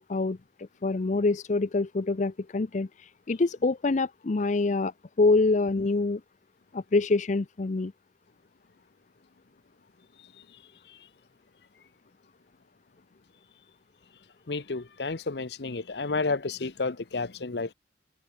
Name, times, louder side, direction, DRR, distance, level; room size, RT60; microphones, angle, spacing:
voice 1, 0.0-4.9 5.2-6.2 6.7-7.9, left 3 dB, 45° left, 0.5 m, -26 dB
voice 2, 14.5-17.7, left 3 dB, 70° left, 0.9 m, -31 dB
head